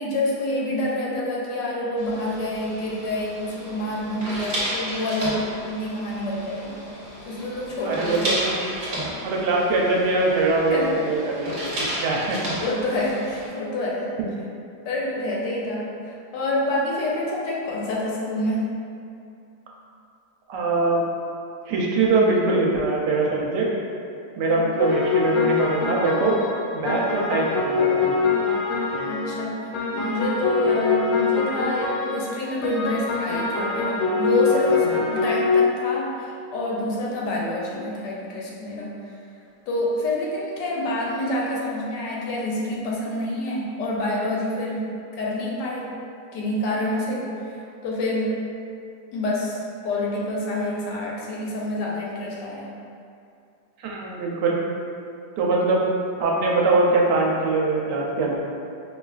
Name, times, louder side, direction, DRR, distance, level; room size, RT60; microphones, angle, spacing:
voice 1, 0.0-6.8 7.2-8.2 10.7-10.9 12.6-14.1 14.8-18.7 24.5-24.7 29.1-39.2 39.7-45.9 46.3-48.5 49.1-52.7, left 1 dB, 90° left, -4 dB, 1.3 m, -27 dB
sound 1, 2.0-13.5, equal, 45° right, 0.9 m, -33 dB
voice 2, 7.9-8.5 9.2-12.4 20.5-21.1 21.7-23.7 24.4-26.3 26.7-28.2 34.8-34.9 53.8-54.6 55.4-55.8 56.2-58.4, right 3 dB, 80° right, -3 dB, 1.2 m, -22 dB
sound 2, 24.8-29.5 29.7-35.9, left 5 dB, 70° left, 0.9 m, -24 dB
4.9 x 2.3 x 2.3 m, 2.5 s
omnidirectional pair, 1.8 m